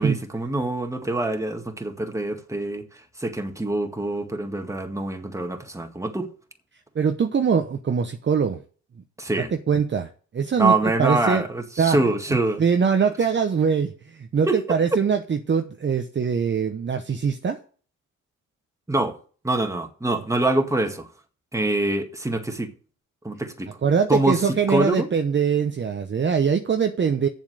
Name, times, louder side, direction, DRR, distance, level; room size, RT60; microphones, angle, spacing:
voice 1, 0.0-6.3 9.2-9.5 10.6-12.6 14.5-14.8 18.9-19.2 19.4-21.1 21.5-22.7 23.2-23.7 24.1-25.1, right 2 dB, 10° right, 1.9 m, -25 dB
voice 2, 6.9-8.6 9.7-11.4 11.8-12.0 12.6-17.6 23.8-27.3, right 6 dB, 35° right, 0.9 m, -22 dB
7.4 x 7.2 x 6.6 m
supercardioid pair, 75°, 33 cm